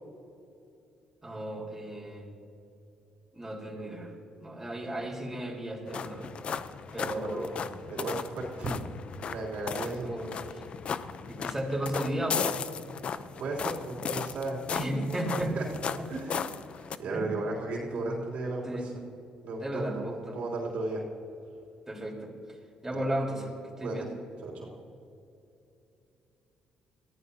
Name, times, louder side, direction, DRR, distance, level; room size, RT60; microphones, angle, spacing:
voice 1, 1.2-2.2 3.3-4.1 4.4-6.3 6.9-8.0 8.6-8.8 9.8-10.3 11.3-12.5 14.7-15.5 16.0-16.1 17.1-17.3 17.9-18.1 18.6-18.8 19.6-20.4 21.9-22.3 22.8-24.1, right 1 dB, 10° right, -3 dB, 4.1 m, -34 dB
sound 1, 5.9-17.0, left 6 dB, 50° left, 0.6 m, -36 dB
voice 2, 7.0-7.4 7.9-8.8 9.3-10.1 13.4-14.6 15.5-15.7 16.1-18.9 19.4-21.0 22.9-23.1 23.8-24.1 24.4-24.7, right 2 dB, 65° right, -3 dB, 3.3 m, -35 dB
22.5 x 15.0 x 2.8 m, 2.7 s
cardioid pair, 90°, 2 cm